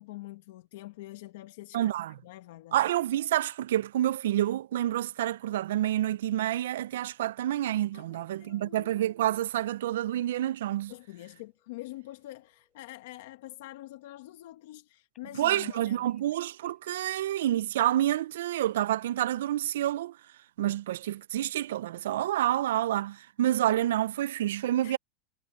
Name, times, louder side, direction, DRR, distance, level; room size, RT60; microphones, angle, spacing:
voice 1, 0.0-1.9 2.2-2.8 7.9-9.0 10.9-16.1 24.8-25.0, left 17 dB, 60° left, 1.4 m, -45 dB
voice 2, 1.7-2.1 2.7-10.9 15.4-20.2 20.6-25.0, right 13 dB, 80° right, 0.4 m, -28 dB
sound 1, 10.7-13.0 15.1-17.5 17.9-18.2, left 8 dB, 15° left, 4.4 m, -72 dB
supercardioid pair, 170°, 0 cm